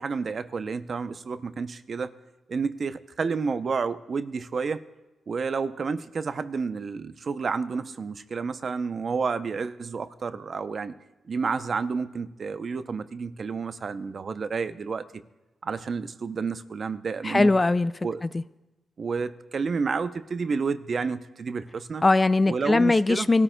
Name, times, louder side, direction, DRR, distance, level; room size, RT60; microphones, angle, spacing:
voice 1, 0.0-2.1 2.5-4.8 5.3-10.9 11.3-15.1 15.6-17.5 18.0-18.2 19.0-22.0 22.5-23.3, right 5 dB, 50° right, 12 dB, 0.6 m, -30 dB
voice 2, 17.2-17.9 18.2-18.4 22.0-23.4, left 2 dB, 25° left, 15 dB, 0.3 m, -20 dB
22.5 x 13.0 x 2.2 m, 1.0 s
cardioid pair, 80°, 0 cm